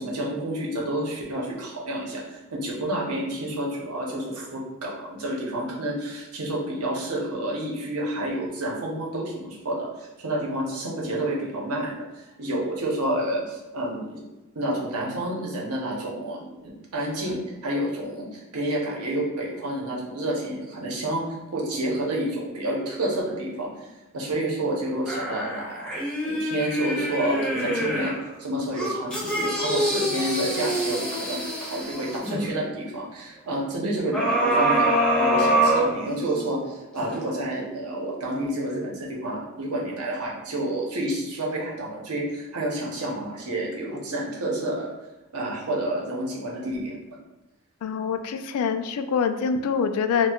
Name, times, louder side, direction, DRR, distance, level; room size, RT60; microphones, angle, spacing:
voice 1, 0.0-14.2 14.5-21.2 21.5-25.9 26.2-28.1 28.4-34.9 35.1-44.9 45.3-46.9, right 1 dB, 90° right, -3 dB, 0.9 m, -29 dB
sound 1, 25.1-28.2 28.7-32.4 34.1-36.5 37.0-37.1, right 1 dB, 5° left, 0.7 m, -25 dB
voice 2, 47.8-50.3, left 6 dB, 85° left, 12 dB, 0.3 m, -25 dB
4.3 x 2.3 x 2.3 m, 1.1 s
head